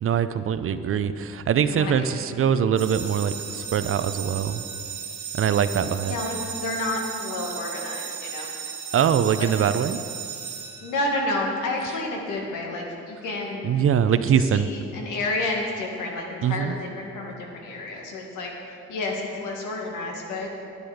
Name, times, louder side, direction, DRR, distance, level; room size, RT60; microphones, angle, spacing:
voice 1, 0.0-4.6 5.3-6.1 8.9-10.0 13.6-14.7 16.4-16.7, right 8 dB, 45° right, 12 dB, 0.5 m, -23 dB
voice 2, 1.7-2.1 2.3-2.6 6.0-6.3 6.6-8.5 9.4-9.5 10.8-13.8 14.3-18.5 18.9-20.5, left 2 dB, 90° left, 0 dB, 1.9 m, -30 dB
sound 1, 2.8-11.4, right 8 dB, 85° right, 2.1 m, -35 dB
10.5 x 9.7 x 5.1 m, 2.5 s
cardioid pair, 90°, 30 cm